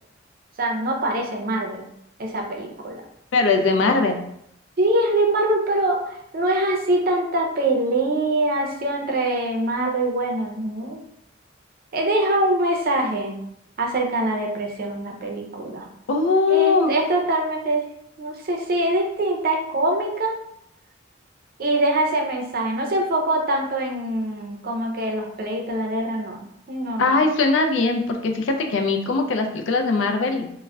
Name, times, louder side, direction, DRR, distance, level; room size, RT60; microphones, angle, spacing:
voice 1, 0.6-1.8 2.2-3.0 4.8-11.0 11.9-13.4 13.8-15.9 16.5-17.9 18.2-20.3 21.6-27.1, right 1 dB, 50° right, 1 dB, 0.5 m, -23 dB
voice 2, 3.3-4.2 16.1-16.9 27.0-30.5, left 3 dB, 75° left, 5 dB, 0.4 m, -20 dB
2.3 x 2.1 x 3.4 m, 0.75 s
head